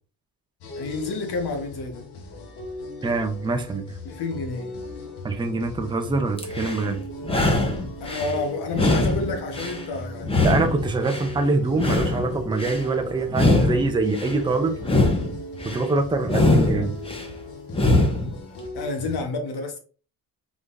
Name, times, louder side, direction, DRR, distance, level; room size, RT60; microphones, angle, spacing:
sound 1, 0.6-19.2, left 3 dB, 85° left, 1.2 m, -42 dB
sound 2, 0.7-18.9, equal, 45° left, 1.7 m, -40 dB
voice 1, 0.8-2.1 4.0-4.7 8.0-10.5 18.7-19.8, left 3 dB, 70° left, 1.3 m, -30 dB
voice 2, 3.0-3.9 5.2-7.0 10.4-14.8 15.6-16.9, right 3 dB, 10° right, 0.6 m, -24 dB
sound 3, 6.4-6.9 7.2-8.3 8.7-9.9 10.2-11.3 11.7-12.8 13.3-14.4 14.8-15.8 16.3-17.3 17.7-18.3, left 2 dB, 15° left, 0.9 m, -22 dB
4.9 x 3.9 x 2.6 m
cardioid pair, 140°, 40 cm